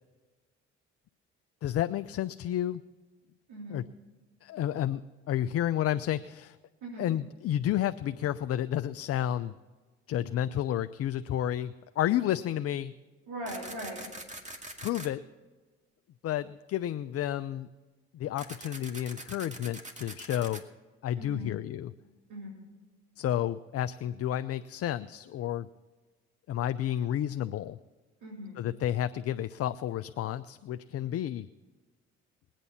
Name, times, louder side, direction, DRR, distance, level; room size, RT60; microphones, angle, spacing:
voice 1, 1.6-2.8 3.7-3.8 4.4-5.0 5.3-6.6 7.0-9.5 10.1-12.9 14.8-15.2 16.2-17.7 18.1-20.6 21.0-21.9 23.2-25.7 26.5-27.8 28.6-31.5, left 11 dB, 50° left, 12 dB, 0.6 m, -31 dB
voice 2, 3.5-3.8 6.8-7.0 13.3-14.1 21.2-21.6 22.3-22.5 28.2-28.6, equal, 80° right, -4 dB, 3.9 m, -40 dB
sound 1, 13.5-15.1 18.4-20.6, right 2 dB, 25° right, 2.3 m, -43 dB
21.5 x 9.0 x 4.2 m, 1.3 s
hypercardioid pair, 65°, 30 cm